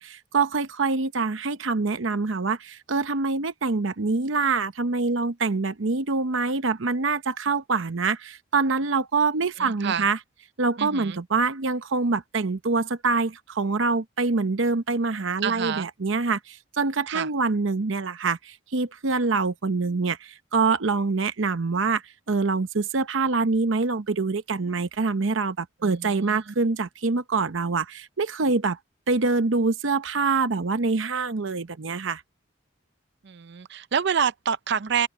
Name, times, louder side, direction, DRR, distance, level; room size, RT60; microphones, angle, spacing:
voice 1, 0.0-10.2 10.6-22.0 22.3-28.8 29.1-32.2, right 4 dB, 90° right, 0.8 m, -25 dB
voice 2, 9.6-10.1 10.8-11.2 15.4-15.9 17.1-17.3 25.8-26.5 33.2-35.1, right 7 dB, 65° right, 0.6 m, -28 dB
open air
head